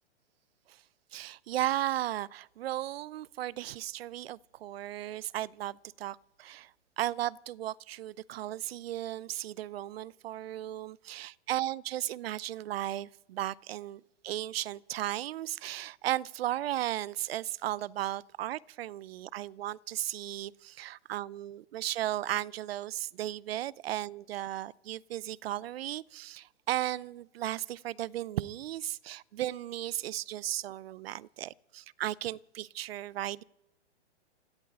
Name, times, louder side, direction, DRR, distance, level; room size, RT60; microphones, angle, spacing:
voice 1, 1.1-6.7 7.0-33.4, right 13 dB, 60° right, 0.6 m, -35 dB
14.0 x 11.5 x 8.7 m
hypercardioid pair, 135°, 33 cm